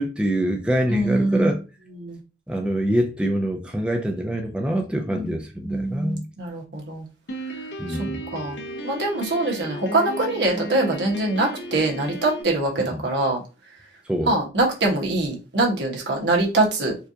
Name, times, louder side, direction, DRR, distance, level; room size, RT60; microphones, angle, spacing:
voice 1, 0.0-1.6 2.5-6.2 7.8-8.2 12.8-13.0 14.0-14.3, right 1 dB, 5° right, 0.4 m, -25 dB
voice 2, 0.9-1.5 2.0-2.2 5.1-5.3 5.6-7.0 7.9-8.0 8.3-8.6 8.8-13.4 14.2-17.0, right 2 dB, 75° right, 1.2 m, -23 dB
Piano, 7.3-12.4, right 1 dB, 70° left, 0.6 m, -34 dB
4.4 x 2.4 x 2.6 m
head